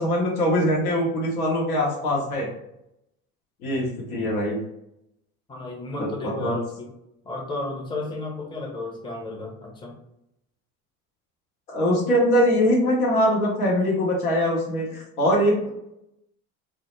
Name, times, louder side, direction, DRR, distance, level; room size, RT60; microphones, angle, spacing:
voice 1, 0.0-2.5 3.6-4.6 6.0-6.6 11.7-15.7, equal, 80° left, -2 dB, 0.8 m, -22 dB
voice 2, 5.5-6.9 7.2-9.9, left 2 dB, 10° left, -1 dB, 0.5 m, -33 dB
2.1 x 2.0 x 3.0 m, 0.82 s
hypercardioid pair, 70°, 44 cm